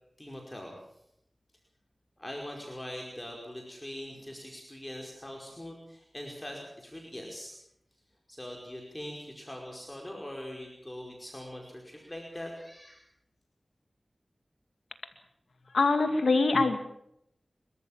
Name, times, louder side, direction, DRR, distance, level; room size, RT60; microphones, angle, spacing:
voice 1, 0.2-0.8 2.2-7.6 8.3-13.0, left 1 dB, 20° left, 0 dB, 5.0 m, -42 dB
voice 2, 15.7-16.8, left 3 dB, 85° left, 8 dB, 2.3 m, -24 dB
29.5 x 13.5 x 7.4 m, 0.77 s
cardioid pair, 45°, 0 cm